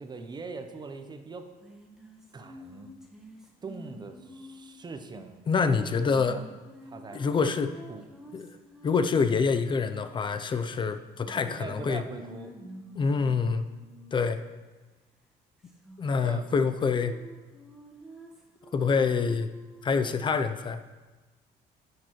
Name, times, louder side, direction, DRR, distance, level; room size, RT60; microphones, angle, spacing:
voice 1, 0.0-1.5 2.3-2.9 3.6-5.4 6.1-6.5 6.8-7.5 7.9-8.0 11.4-12.5 16.2-16.5, right 4 dB, 25° right, 7 dB, 0.7 m, -41 dB
sound 1, 1.6-4.9 6.1-9.9 11.2-14.3 15.6-16.6 17.0-19.9, equal, 5° right, 1.1 m, -49 dB
voice 2, 5.5-6.4 7.1-7.7 8.3-8.5 8.8-12.0 13.0-13.7 14.1-14.4 16.0-17.1 18.7-19.5 19.8-20.8, left 5 dB, 30° left, 10 dB, 0.5 m, -26 dB
9.9 x 6.7 x 3.1 m, 1.3 s
cardioid pair, 110°, 17 cm